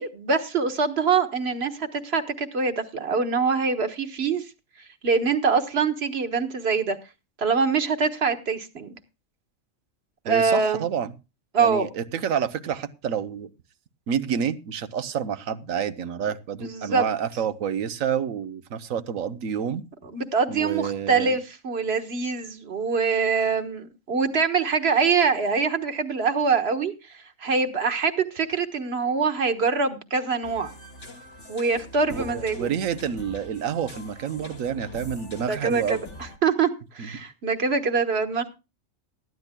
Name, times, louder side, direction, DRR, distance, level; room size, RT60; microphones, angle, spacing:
voice 1, 0.0-4.5 5.0-7.0 7.4-9.0 10.3-10.8 11.5-11.9 16.6-17.0 20.0-30.7 31.5-32.7 35.5-36.0 36.4-36.7 36.9-38.5, right 5 dB, 55° right, 1.5 m, -24 dB
voice 2, 10.2-11.1 11.6-13.5 14.1-19.8 20.5-21.4 32.1-36.0 37.0-37.1, right 8 dB, 85° right, 1.3 m, -28 dB
sound 1, 30.4-36.4, left 1 dB, 65° left, 2.4 m, -43 dB
19.0 x 13.5 x 2.2 m
omnidirectional pair, 1.3 m